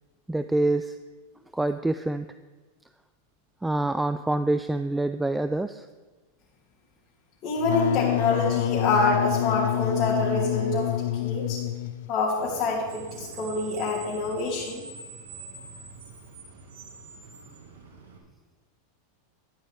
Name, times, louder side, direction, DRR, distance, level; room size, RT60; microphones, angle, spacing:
voice 1, 0.3-1.0 1.5-2.3 3.6-5.9, right 2 dB, 5° right, 10 dB, 0.4 m, -26 dB
voice 2, 7.4-11.6 12.1-14.9, left 3 dB, 40° left, -8 dB, 3.0 m, -26 dB
Wind instrument woodwind instrument, 7.6-12.2, left 13 dB, 70° left, 0.4 m, -27 dB
Screech, 12.4-18.2, right 4 dB, 75° right, 2.0 m, -44 dB
11.5 x 11.0 x 3.6 m, 1.3 s
hypercardioid pair, 100°, 0 cm